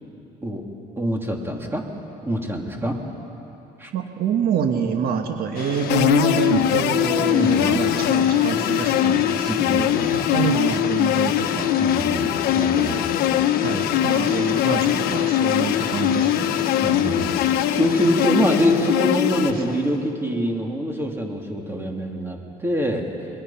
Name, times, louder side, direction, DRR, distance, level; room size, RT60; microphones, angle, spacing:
voice 1, 1.0-1.8 2.2-3.0 3.8-3.9 6.5-6.7 7.4-7.8 9.5-10.1 11.8-13.0 16.8-23.1, equal, 15° right, 1 dB, 2.9 m, -25 dB
voice 2, 3.9-11.7 13.6-16.6 19.5-19.6, right 7 dB, 65° right, 5 dB, 1.5 m, -26 dB
sound 1, 5.5-20.0, left 8 dB, 60° left, 1.4 m, -29 dB
sound 2, 5.9-19.5, left 12 dB, 85° left, 0.9 m, -22 dB
27.5 x 23.0 x 5.8 m, 3.0 s
cardioid pair, 110°, 17 cm